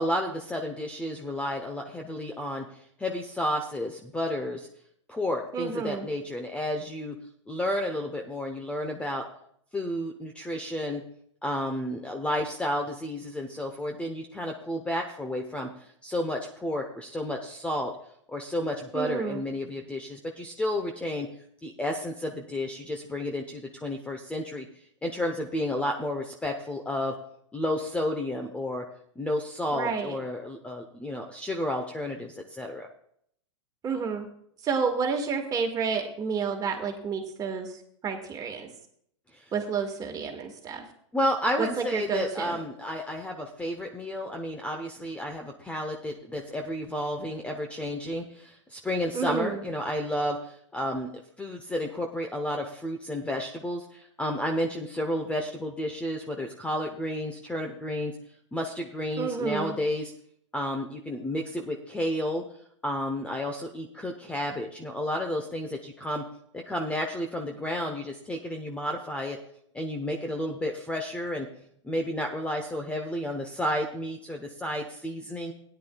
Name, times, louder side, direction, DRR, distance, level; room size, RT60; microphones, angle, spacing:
voice 1, 0.0-2.7 3.0-4.7 5.1-7.2 7.5-9.3 9.7-11.0 11.4-15.7 16.0-17.9 18.3-21.3 21.6-24.7 25.0-27.1 27.5-28.9 29.2-32.9 39.3-39.4 41.1-51.1 51.4-58.1 58.5-60.1 60.5-62.4 62.8-66.2 66.5-69.4 69.7-71.5 71.8-75.5, left 1 dB, 10° left, 3 dB, 0.9 m, -31 dB
voice 2, 5.5-6.1 18.9-19.4 29.7-30.2 33.8-34.2 34.6-38.7 39.5-40.8 41.6-42.6 49.1-49.6 59.2-59.8, right 5 dB, 25° right, 3 dB, 2.0 m, -30 dB
17.0 x 10.0 x 2.4 m, 0.66 s
hypercardioid pair, 120°, 16 cm